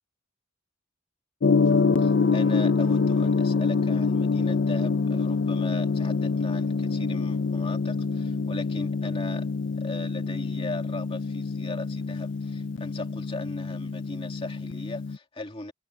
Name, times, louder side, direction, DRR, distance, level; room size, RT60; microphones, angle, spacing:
Gong, 1.4-15.2, left 4 dB, 55° left, 0.5 m, -26 dB
voice 1, 2.0-9.5 9.8-15.7, left 2 dB, 25° left, 2.4 m, -38 dB
head